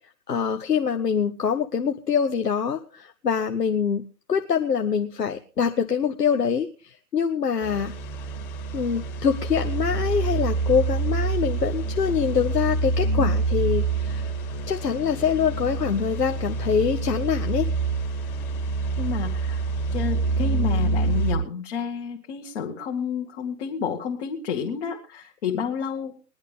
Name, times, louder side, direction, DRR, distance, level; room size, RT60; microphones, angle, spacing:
voice 1, 0.3-7.9 8.7-14.3 14.7-17.7, left 6 dB, 70° left, 7 dB, 1.2 m, -24 dB
sound 1, 7.6-21.3, right 3 dB, 20° left, 2.2 m, -26 dB
voice 2, 19.0-19.6 19.9-26.2, left 7 dB, 40° left, 0 dB, 1.9 m, -30 dB
20.5 x 11.0 x 3.5 m, 0.34 s
figure-of-eight pair, 130°, 49 cm